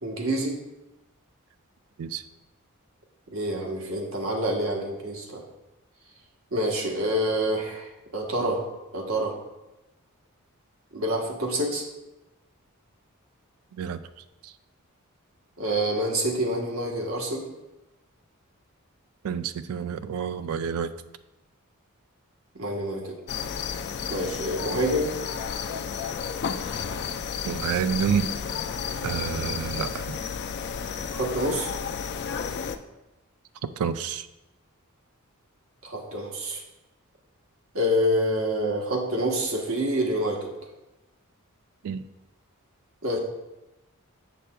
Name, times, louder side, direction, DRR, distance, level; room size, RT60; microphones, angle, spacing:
voice 1, 0.0-0.6 3.3-5.4 6.5-8.6 8.9-9.3 10.9-11.8 15.6-17.5 22.5-23.1 24.1-25.1 31.1-31.7 35.8-36.6 37.7-40.5 43.0-43.2, equal, 70° right, 0 dB, 1.2 m, -27 dB
voice 2, 19.2-20.9 27.5-28.3 29.0-30.2 33.6-34.3 41.8-42.0, right 7 dB, 90° right, 12 dB, 0.3 m, -28 dB
sound 1, 23.3-32.8, left 6 dB, 50° left, 0.4 m, -32 dB
7.5 x 6.5 x 2.3 m, 1.0 s
head